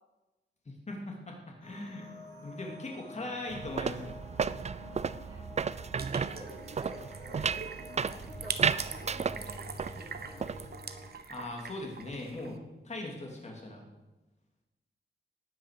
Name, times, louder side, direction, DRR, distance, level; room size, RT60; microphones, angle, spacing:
voice 1, 0.6-2.1 2.4-4.2 11.3-12.6 12.8-13.8, left 2 dB, 35° left, 0 dB, 3.3 m, -40 dB
sound 1, 1.6-11.1, left 2 dB, 75° left, 4.9 m, -49 dB
sound 2, 3.5-10.0 10.2-10.7, right 6 dB, 35° right, 0.4 m, -33 dB
sound 3, 6.0-12.6, right 5 dB, 50° right, 1.1 m, -43 dB
voice 2, 6.1-8.6 8.9-9.6 9.9-10.4, equal, 15° right, -5 dB, 3.1 m, -50 dB
18.0 x 9.6 x 6.9 m, 1.1 s
wide cardioid pair, 180°, 20 cm